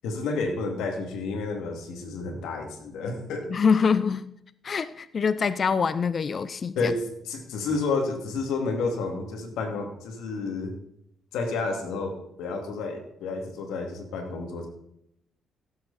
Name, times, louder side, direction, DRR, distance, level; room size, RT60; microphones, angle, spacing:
voice 1, 0.0-3.6 6.7-10.7 11.3-14.7, left 3 dB, 85° left, 3 dB, 2.6 m, -30 dB
voice 2, 3.5-4.3 4.6-6.9, left 5 dB, 45° left, 15 dB, 0.5 m, -24 dB
16.0 x 7.9 x 4.3 m, 0.77 s
cardioid pair, 90°, 0 cm